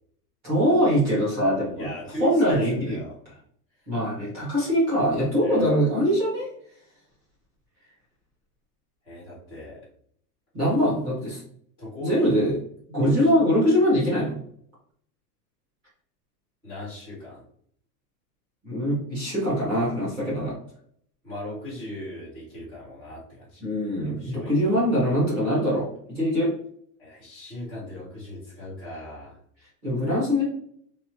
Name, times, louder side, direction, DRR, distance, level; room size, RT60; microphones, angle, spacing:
voice 1, 0.4-1.9 2.2-3.0 3.9-6.5 10.5-11.4 12.0-12.5 12.9-14.4 18.6-20.6 23.6-26.5 29.8-30.4, equal, 20° right, -8 dB, 0.8 m, -23 dB
voice 2, 1.8-3.2 5.4-5.7 9.0-9.9 11.8-12.3 13.0-13.3 16.6-17.4 21.2-23.6 24.0-24.7 27.0-29.4, left 1 dB, 5° right, -20 dB, 0.4 m, -38 dB
3.0 x 2.1 x 2.8 m, 0.63 s
supercardioid pair, 180°, 49 cm